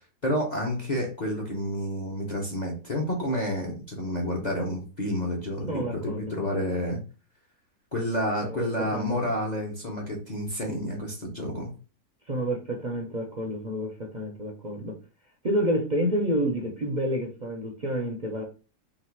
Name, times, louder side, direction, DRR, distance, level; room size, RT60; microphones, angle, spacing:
voice 1, 0.0-7.0 7.9-11.7, left 1 dB, 35° left, -1 dB, 0.8 m, -30 dB
voice 2, 5.7-6.3 8.4-9.2 12.3-14.9 15.4-18.4, equal, 40° right, 0 dB, 0.7 m, -29 dB
3.9 x 2.5 x 4.5 m, 0.34 s
omnidirectional pair, 1.7 m